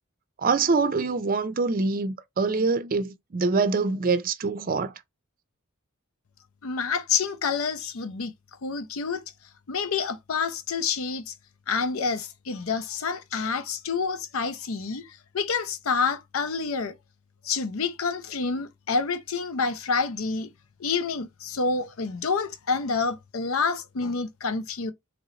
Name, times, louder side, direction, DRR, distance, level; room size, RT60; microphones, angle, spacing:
voice 1, 0.4-4.9, right 4 dB, 45° right, 0.5 m, -25 dB
voice 2, 6.6-8.3 8.6-9.2 9.7-11.3 11.7-16.9 17.4-20.5 20.8-24.9, left 5 dB, 80° left, 0.6 m, -28 dB
3.8 x 3.0 x 3.1 m
head